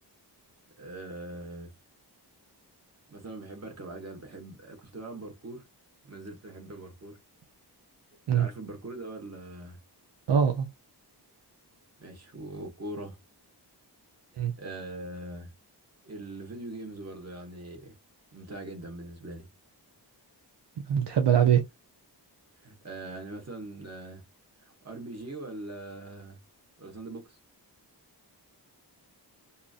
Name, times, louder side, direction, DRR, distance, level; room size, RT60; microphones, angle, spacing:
voice 1, 0.8-1.7 3.1-5.7 6.0-7.2 8.3-9.8 12.0-13.2 14.6-15.5 16.0-17.9 18.3-19.5 22.6-24.2 24.6-26.4 26.8-27.4, right 2 dB, 40° right, 1.3 m, -41 dB
voice 2, 10.3-10.7 14.4-14.5 20.9-21.6, right 8 dB, 80° right, 0.7 m, -22 dB
2.9 x 2.6 x 2.4 m
wide cardioid pair, 80°, 41 cm